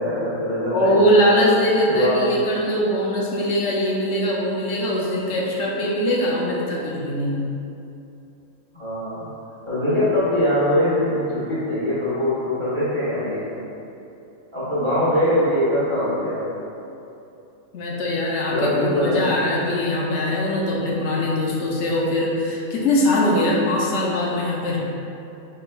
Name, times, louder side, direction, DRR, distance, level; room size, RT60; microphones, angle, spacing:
voice 1, 0.0-1.0 1.9-2.3 8.7-9.2 9.7-13.6 14.5-16.4 18.5-19.2, left 1 dB, 20° right, -12 dB, 1.3 m, -22 dB
voice 2, 0.7-7.4 17.7-24.8, left 1 dB, 65° left, -3 dB, 0.8 m, -21 dB
4.7 x 3.3 x 2.3 m, 2.8 s
omnidirectional pair, 1.4 m